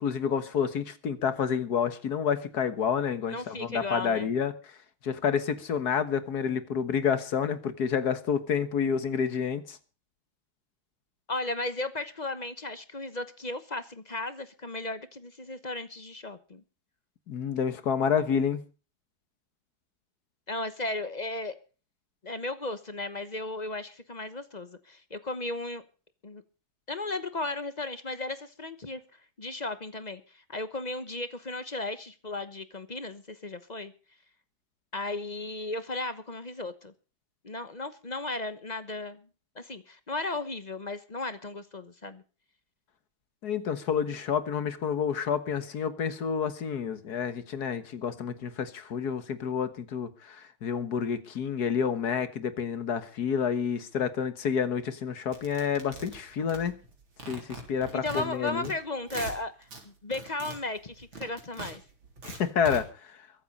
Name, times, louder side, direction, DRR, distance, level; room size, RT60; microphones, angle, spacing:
voice 1, 0.0-4.5 5.0-9.8 17.3-18.6 43.4-56.8 57.3-58.7 62.2-62.9, left 7 dB, 55° left, 1.8 m, -29 dB
voice 2, 3.3-4.3 11.3-16.6 20.5-21.6 22.2-25.8 26.2-26.4 26.9-29.0 29.4-33.9 34.9-36.9 37.4-39.2 39.5-42.2 57.9-61.8, left 2 dB, 30° left, 0.8 m, -35 dB
sound 1, 55.3-56.9 57.2-58.7 59.0-59.8 60.1-62.8, right 2 dB, 75° right, 4.5 m, -41 dB
23.0 x 8.1 x 5.4 m
omnidirectional pair, 2.2 m